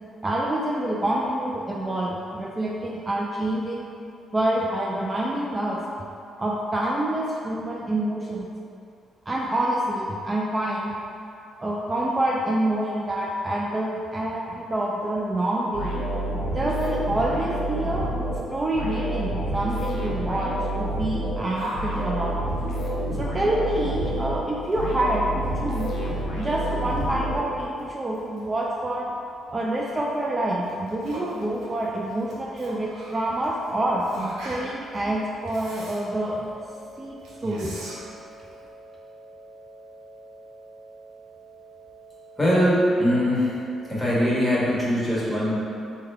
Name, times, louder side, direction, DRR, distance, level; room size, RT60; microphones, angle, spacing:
voice 1, 0.2-3.8 4.3-5.8 6.4-8.5 9.3-10.9 11.6-16.0 16.5-18.1 18.5-22.4 23.1-26.0 26.4-29.1 29.5-34.0 34.4-36.5 37.0-37.8, right 1 dB, 25° right, -3 dB, 0.3 m, -27 dB
sound 1, 15.7-27.9, right 1 dB, 70° left, 0.7 m, -29 dB
Yell, 21.5-38.7, right 1 dB, 85° right, 0.6 m, -42 dB
sound 2, 32.6-44.6, right 3 dB, 45° left, 1.1 m, -48 dB
voice 2, 42.4-43.6 43.9-45.5, equal, 15° left, -8 dB, 1.2 m, -21 dB
3.5 x 2.2 x 3.3 m, 2.5 s
supercardioid pair, 70°, 0 cm